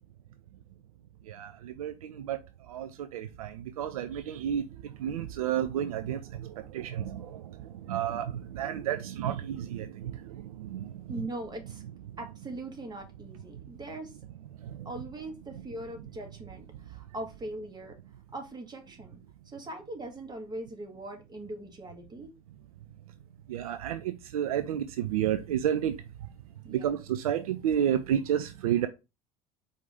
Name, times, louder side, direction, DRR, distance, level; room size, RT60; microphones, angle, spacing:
voice 1, 1.3-2.4 2.7-11.3 14.6-14.9 15.5-15.6 23.5-25.9 26.7-28.9, right 10 dB, 75° right, 0.4 m, -31 dB
voice 2, 11.1-11.8 12.2-14.1 14.8-18.0 18.3-19.2 19.5-22.3 26.6-26.9, right 1 dB, 25° right, 1.6 m, -41 dB
4.9 x 2.8 x 3.3 m
figure-of-eight pair, 65°, 18 cm